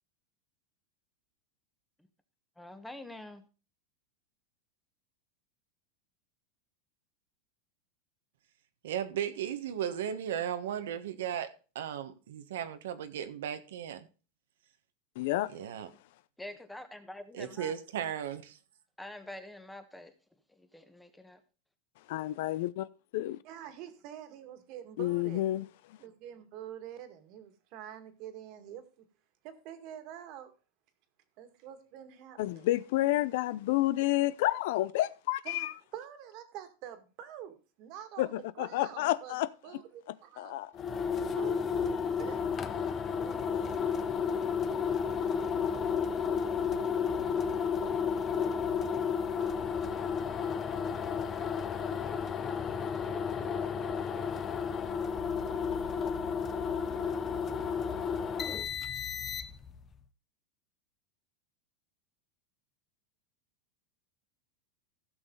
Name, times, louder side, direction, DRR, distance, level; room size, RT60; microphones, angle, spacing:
voice 1, 2.6-3.4 16.4-17.7 19.0-20.1 20.6-21.4, left 1 dB, 5° left, 1.3 m, -46 dB
voice 2, 8.8-14.1 15.5-15.9 17.3-18.6, right 9 dB, 85° right, 1.3 m, -36 dB
voice 3, 15.2-15.5 22.1-22.9 23.1-23.4 25.0-25.7 32.4-35.7 38.2-39.5 40.4-40.7, left 16 dB, 65° left, 0.6 m, -30 dB
voice 4, 23.4-25.4 26.0-28.9 29.4-30.5 31.4-32.7 35.4-39.4 39.6-40.6 41.3-42.4 43.1-43.9, right 10 dB, 50° right, 1.9 m, -46 dB
sound 1, 40.8-59.8, left 6 dB, 25° left, 0.8 m, -32 dB
15.5 x 6.4 x 3.9 m
supercardioid pair, 140°, 0 cm